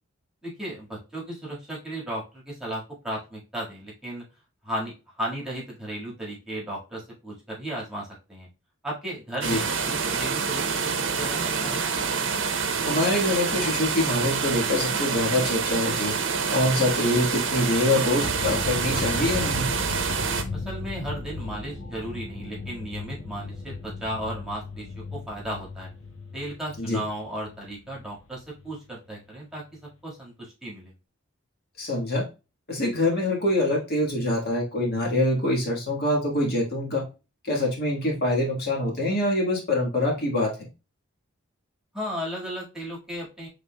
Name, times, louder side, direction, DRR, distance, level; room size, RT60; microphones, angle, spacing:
voice 1, 0.4-4.2 4.6-8.5 8.8-12.1 20.5-25.9 26.3-29.6 30.0-30.9 41.9-43.5, right 1 dB, 5° right, -4 dB, 1.7 m, -35 dB
sound 1, 9.4-20.4, right 5 dB, 60° right, 0.7 m, -27 dB
voice 2, 12.9-16.1 16.5-19.7 26.8-27.0 31.8-32.3 32.7-37.0 37.4-40.7, left 1 dB, 50° left, -2 dB, 1.5 m, -25 dB
sound 2, 18.2-29.2, left 3 dB, 80° left, 1.1 m, -36 dB
6.6 x 3.4 x 2.2 m, 0.29 s
head